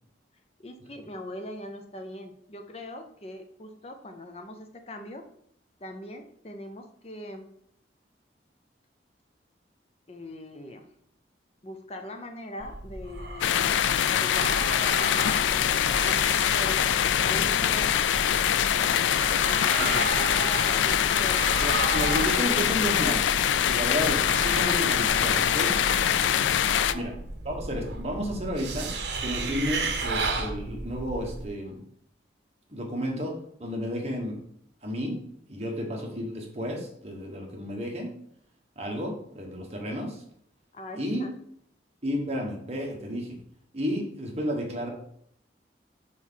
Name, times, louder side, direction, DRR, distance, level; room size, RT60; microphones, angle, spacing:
voice 1, 0.6-5.2 5.8-7.5 10.1-10.9 11.6-13.7 14.2-17.9 18.8-21.8 26.7-27.1 40.7-41.3, left 1 dB, 35° left, 6 dB, 0.6 m, -41 dB
sound 1, 12.6-31.5, right 3 dB, 70° right, 0.9 m, -34 dB
sound 2, 13.4-26.9, left 10 dB, 90° left, 0.3 m, -24 dB
voice 2, 21.6-23.2 23.6-25.8 26.9-27.1 27.4-28.9 29.2-31.8 32.7-34.4 34.8-35.2 35.5-38.1 38.8-40.2 41.0-41.3 42.0-43.3 43.7-44.9, equal, 35° right, 0 dB, 1.4 m, -32 dB
4.7 x 4.6 x 5.7 m, 0.67 s
head